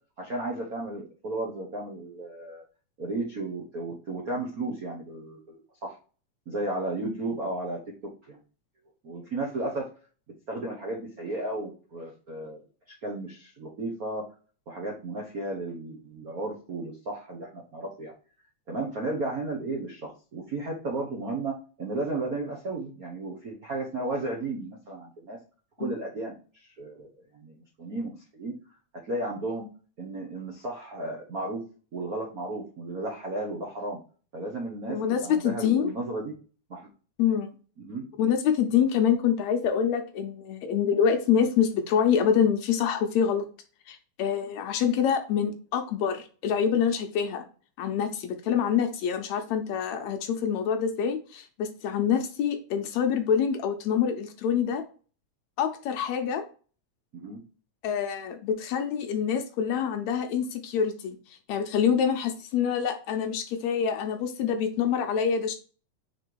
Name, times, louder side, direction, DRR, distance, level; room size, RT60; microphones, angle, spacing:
voice 1, 0.2-2.6 3.0-6.0 6.5-7.8 8.2-8.4 9.0-9.9 10.5-12.6 12.9-14.3 14.7-18.1 18.7-25.4 25.8-28.5 29.1-29.7 30.0-31.7 31.9-34.0 34.3-36.3 36.7-36.9 37.8-38.0 57.1-57.4, right 2 dB, 85° right, -1 dB, 0.7 m, -34 dB
voice 2, 34.9-35.9 37.2-37.5 38.2-43.5 43.9-47.5 47.8-54.8 55.6-56.4 57.8-61.2 61.5-65.6, left 8 dB, 75° left, 6 dB, 1.9 m, -26 dB
4.9 x 4.4 x 4.6 m, 0.38 s
omnidirectional pair, 3.5 m